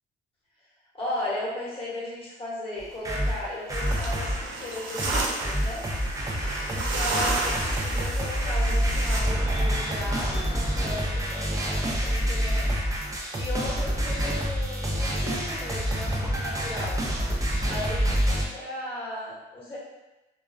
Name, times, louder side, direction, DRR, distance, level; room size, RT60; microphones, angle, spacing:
voice 1, 0.9-5.8 6.6-12.6 13.3-17.0 17.7-19.8, left 1 dB, 30° left, -7 dB, 1.1 m, -36 dB
sound 1, 2.8-4.5 5.0-18.5, equal, 15° right, 0.5 m, -27 dB
sound 2, 3.7-9.2, right 3 dB, 70° right, 0.5 m, -32 dB
2.3 x 2.2 x 2.3 m, 1.0 s
cardioid pair, 90°, 20 cm